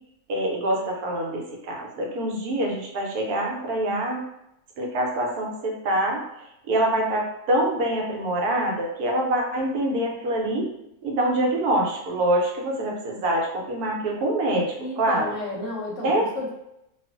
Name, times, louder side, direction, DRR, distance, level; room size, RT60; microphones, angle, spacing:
voice 1, 0.3-4.2 4.8-10.7 11.0-15.3 16.0-16.3, right 1 dB, 80° right, -1 dB, 1.1 m, -25 dB
voice 2, 14.8-16.5, left 2 dB, 65° left, -2 dB, 0.8 m, -32 dB
2.5 x 2.3 x 2.4 m, 0.82 s
omnidirectional pair, 1.6 m